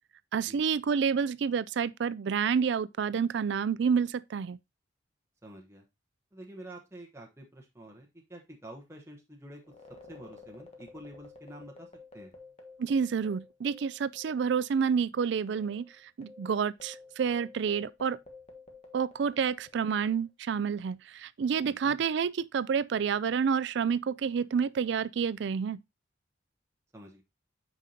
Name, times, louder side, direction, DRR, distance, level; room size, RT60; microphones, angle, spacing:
voice 1, 0.3-4.6 12.8-18.2 18.9-25.8, right 6 dB, 60° right, 0.3 m, -29 dB
voice 2, 5.4-5.8 6.3-9.6 10.1-11.9 12.1-12.3 21.6-21.9 26.9-27.2, right 1 dB, 15° right, 1.0 m, -48 dB
sound 1, 9.6-14.5 14.7-14.9 15.5-20.2, left 3 dB, 30° left, 1.4 m, -51 dB
8.3 x 5.4 x 2.7 m
head